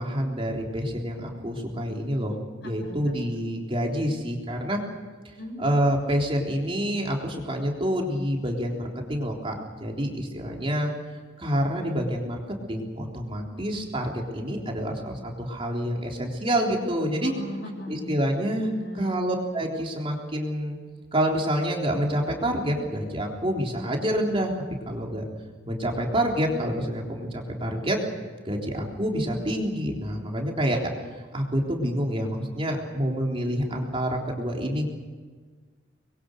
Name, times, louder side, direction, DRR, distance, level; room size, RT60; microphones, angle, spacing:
voice 1, 0.0-2.4 2.6-4.8 5.3-10.9 11.4-12.4 12.7-17.3 17.9-18.7 19.0-20.8 21.1-24.5 24.9-25.3 25.7-28.0 28.5-30.8 31.3-34.9, equal, 30° right, 0 dB, 3.6 m, -27 dB
voice 2, 2.6-3.1 5.3-6.1 17.2-18.1 18.7-19.0, equal, 60° left, 3 dB, 6.4 m, -39 dB
26.0 x 22.0 x 6.6 m, 1.5 s
head